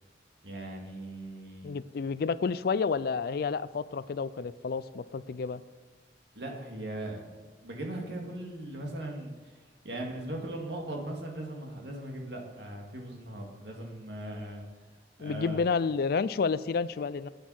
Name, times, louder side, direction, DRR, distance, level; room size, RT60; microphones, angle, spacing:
voice 1, 0.4-1.7 6.3-7.3 7.6-9.6 9.8-14.6 15.2-15.6, right 1 dB, 65° right, 0 dB, 2.0 m, -39 dB
voice 2, 1.6-5.6 15.2-17.3, left 5 dB, 55° left, 16 dB, 0.4 m, -30 dB
9.4 x 8.2 x 6.2 m, 1.3 s
head